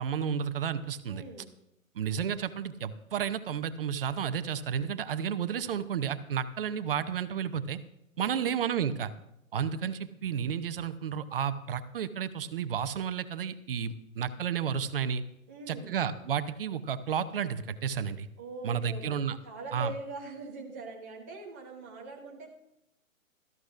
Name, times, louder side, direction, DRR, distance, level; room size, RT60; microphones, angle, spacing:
voice 1, 0.0-1.2 2.0-7.8 8.2-9.1 9.5-15.2 15.7-18.3 18.6-19.4 19.7-19.9, right 8 dB, 40° right, 12 dB, 0.8 m, -32 dB
voice 2, 1.1-1.5 8.2-8.5 15.5-16.0 18.4-19.2 19.4-22.5, right 3 dB, 15° right, -1 dB, 0.4 m, -42 dB
17.5 x 13.5 x 2.5 m, 0.82 s
figure-of-eight pair, 135°, 41 cm